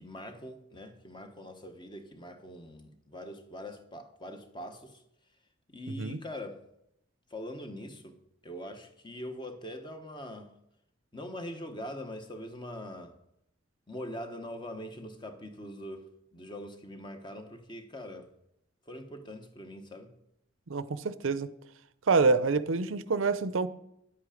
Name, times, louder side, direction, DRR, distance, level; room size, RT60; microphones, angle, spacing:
voice 1, 0.0-5.0 5.7-6.6 7.3-8.2 8.4-10.5 11.1-13.2 13.9-18.3 18.9-20.1, left 1 dB, 25° left, 1.1 m, -43 dB
voice 2, 20.7-21.5 22.1-23.7, right 4 dB, 85° right, 0.6 m, -26 dB
10.0 x 8.2 x 5.0 m
head